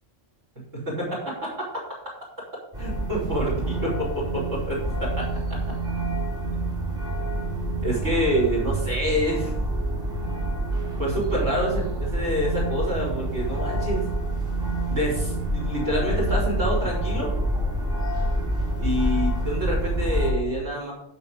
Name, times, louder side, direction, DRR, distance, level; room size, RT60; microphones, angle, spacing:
voice 1, 0.7-1.7 2.8-5.6 7.8-9.5 11.0-14.0 14.9-17.3 18.8-20.9, equal, 80° right, -2 dB, 4.9 m, -27 dB
sound 1, 2.7-20.3, right 1 dB, 45° right, 3.9 m, -27 dB
13.5 x 5.8 x 5.4 m, 0.76 s
omnidirectional pair, 1.3 m